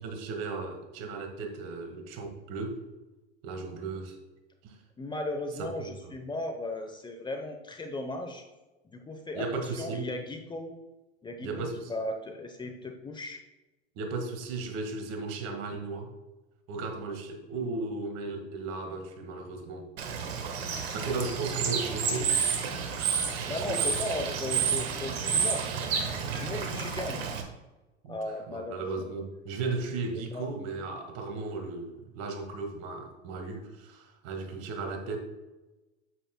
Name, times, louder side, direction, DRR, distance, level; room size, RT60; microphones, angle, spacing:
voice 1, 0.0-2.8 3.4-4.2 4.6-4.8 5.6-6.1 9.3-10.1 11.4-11.9 14.0-16.1 16.7-19.9 20.9-22.4 23.4-23.9 24.2-24.3 28.0-28.2 28.5-35.2, right 3 dB, 50° right, 4 dB, 1.8 m, -36 dB
voice 2, 5.0-8.4 8.9-10.8 11.2-13.4 23.5-25.7 26.3-27.3 28.1-28.9 30.3-30.5, left 2 dB, 15° left, 4 dB, 0.9 m, -36 dB
Bird / Water, 20.0-27.4, right 6 dB, 70° right, 1.4 m, -30 dB
9.0 x 8.0 x 2.2 m, 1.1 s
hypercardioid pair, 90°, 33 cm